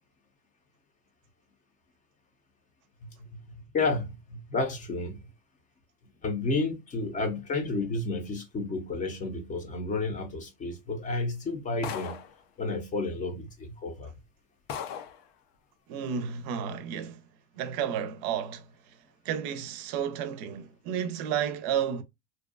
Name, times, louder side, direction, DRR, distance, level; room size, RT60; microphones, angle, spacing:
voice 1, 3.0-5.2 6.2-12.2 12.6-14.1, left 3 dB, 25° left, 0.6 m, -31 dB
sound 1, 11.8-12.4 13.4-13.5 14.1-14.2 14.7-15.2, left 8 dB, 70° left, 0.6 m, -37 dB
voice 2, 15.9-17.2 17.6-18.6 19.2-22.0, right 8 dB, 60° right, 0.5 m, -31 dB
2.6 x 2.2 x 2.3 m
supercardioid pair, 125°, 31 cm